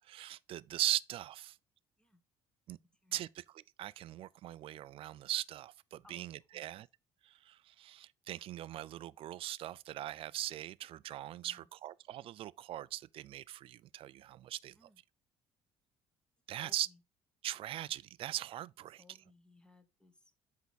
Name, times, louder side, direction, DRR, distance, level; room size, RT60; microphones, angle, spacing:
voice 1, 0.0-1.6 2.7-2.8 3.1-6.9 7.2-14.7 16.5-16.9 17.4-19.0, right 13 dB, 50° right, 0.4 m, -40 dB
voice 2, 6.0-6.7 11.4-11.7 14.7-15.0 16.6-17.0 19.0-20.3, left 2 dB, 5° left, 1.2 m, -63 dB
8.1 x 4.7 x 4.0 m
cardioid pair, 125°, 12 cm